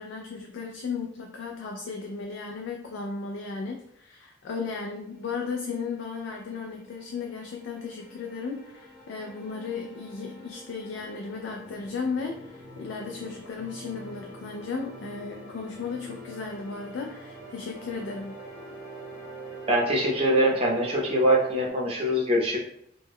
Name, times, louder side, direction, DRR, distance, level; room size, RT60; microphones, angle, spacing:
voice 1, 0.0-18.4, left 4 dB, 80° left, 2 dB, 0.3 m, -35 dB
sound 1, 5.6-21.7, right 2 dB, 5° right, 0.9 m, -45 dB
voice 2, 19.7-22.6, right 1 dB, 30° right, -2 dB, 0.6 m, -23 dB
2.2 x 2.0 x 3.4 m, 0.74 s
head